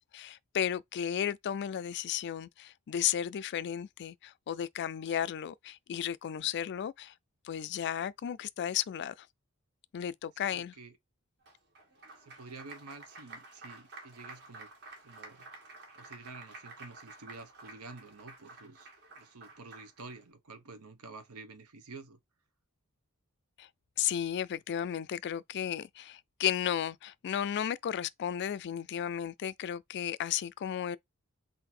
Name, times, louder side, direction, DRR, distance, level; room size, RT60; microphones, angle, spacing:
voice 1, 0.1-7.1 7.4-9.3 9.9-10.7 23.6-23.7 24.0-31.0, left 9 dB, 50° left, 0.3 m, -34 dB
voice 2, 10.5-11.0 12.1-14.7 15.0-15.5 16.0-22.2, right 3 dB, 75° right, 0.9 m, -49 dB
Applause, 11.5-20.2, right 3 dB, 50° right, 1.6 m, -51 dB
3.9 x 2.6 x 4.2 m
head